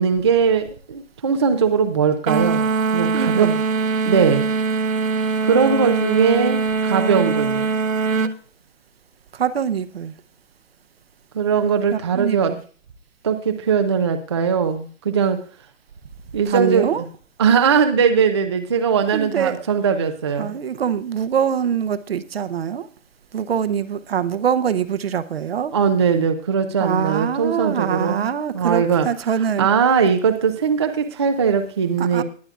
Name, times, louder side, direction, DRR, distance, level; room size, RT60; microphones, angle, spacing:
voice 1, 0.0-2.7 2.9-3.5 4.0-4.5 5.4-7.7 11.3-12.5 13.2-15.4 16.3-16.9 17.4-20.5 25.7-28.3 28.5-29.1 29.6-32.2, right 6 dB, 20° right, 6 dB, 0.5 m, -20 dB
sound 1, 2.3-8.4, right 4 dB, 85° right, 1.4 m, -22 dB
voice 2, 3.1-3.6 9.3-10.1 11.9-12.6 16.5-17.0 19.1-19.6 20.4-22.9 23.3-25.7 26.8-29.7 32.0-32.2, right 8 dB, 50° right, 12 dB, 0.9 m, -24 dB
20.0 x 8.6 x 2.4 m, 0.42 s
hypercardioid pair, 150°, 39 cm